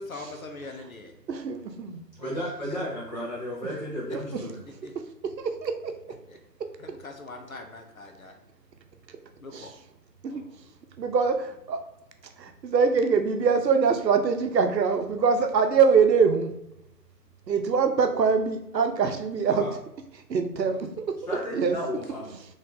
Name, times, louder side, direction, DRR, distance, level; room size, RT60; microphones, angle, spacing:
voice 1, 0.0-1.1 2.3-2.4 4.1-4.2 4.7-4.9 6.3-6.4 6.8-8.4 9.4-9.8 10.3-10.6, left 3 dB, 60° left, 4 dB, 0.6 m, -42 dB
voice 2, 1.3-2.0 5.4-5.9 6.6-6.7 9.5-9.7 10.2-10.4 11.0-11.8 12.4-16.5 17.5-19.6 20.3-21.2 21.5-21.8, right 5 dB, 90° right, 7 dB, 0.7 m, -23 dB
voice 3, 2.2-4.6 19.5-19.7 21.3-22.4, equal, 25° left, -8 dB, 1.1 m, -33 dB
4.1 x 3.1 x 2.6 m, 0.83 s
hypercardioid pair, 175°, 49 cm